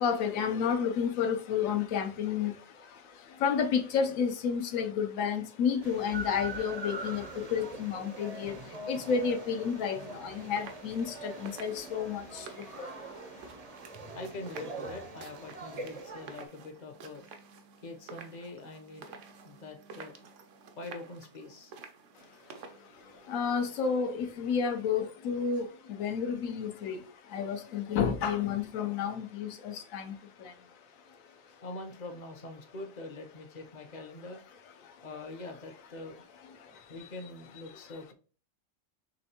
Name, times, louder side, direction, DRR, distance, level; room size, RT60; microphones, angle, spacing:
voice 1, 0.0-2.5 3.4-8.5 8.9-12.2 12.8-12.9 23.3-25.7 26.0-27.0 27.3-30.1, left 7 dB, 85° left, 1.0 m, -30 dB
sound 1, 5.8-16.5, right 2 dB, 40° right, 0.5 m, -43 dB
sound 2, 7.9-24.0, right 5 dB, 70° right, 1.0 m, -52 dB
voice 2, 14.1-17.3 17.8-20.1 20.8-21.7 31.6-34.4 35.0-36.2 36.9-38.1, left 2 dB, 45° left, 0.6 m, -44 dB
5.3 x 3.2 x 2.8 m
omnidirectional pair, 1.4 m